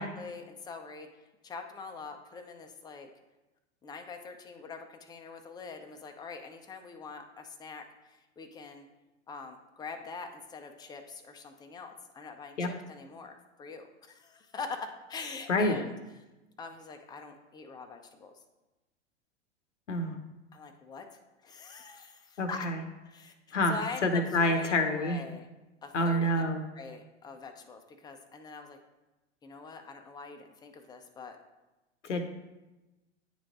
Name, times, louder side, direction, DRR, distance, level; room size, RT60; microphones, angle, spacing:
voice 1, 0.0-3.1 3.8-8.9 9.3-15.9 16.6-18.4 20.5-21.1 21.4-22.7 23.0-25.5 25.8-26.3 26.7-28.8 29.4-31.4, left 4 dB, 10° left, 5 dB, 0.5 m, -44 dB
voice 2, 15.5-15.8 19.9-20.2 22.4-22.8 23.5-23.8 24.0-25.2 25.9-26.6 32.0-32.3, left 1 dB, 85° left, 6 dB, 0.8 m, -27 dB
9.4 x 3.2 x 3.9 m, 1.1 s
hypercardioid pair, 95°, 35 cm